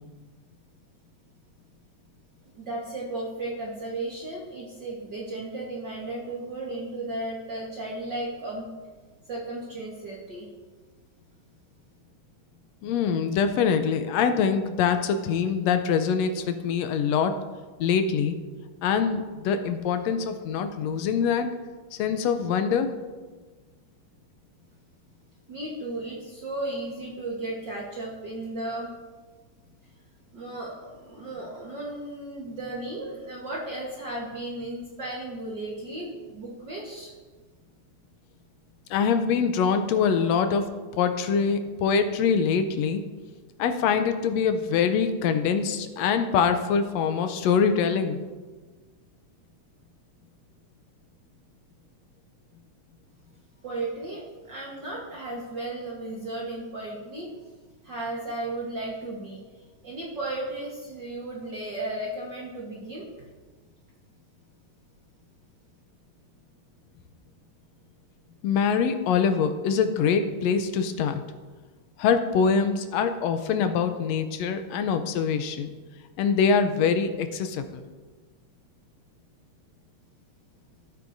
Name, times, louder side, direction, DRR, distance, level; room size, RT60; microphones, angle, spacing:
voice 1, 2.5-8.7 9.2-10.5 25.5-29.0 30.3-37.1 53.6-57.3 57.8-59.4 59.8-63.1, right 2 dB, 50° right, -4 dB, 1.5 m, -35 dB
voice 2, 12.8-17.3 17.8-18.3 18.8-21.5 22.0-22.9 38.9-40.6 40.9-43.0 43.6-48.2 68.4-71.2 72.0-75.7 76.2-77.8, left 6 dB, 75° left, 8 dB, 1.6 m, -24 dB
14.0 x 8.4 x 2.6 m, 1.3 s
omnidirectional pair, 3.4 m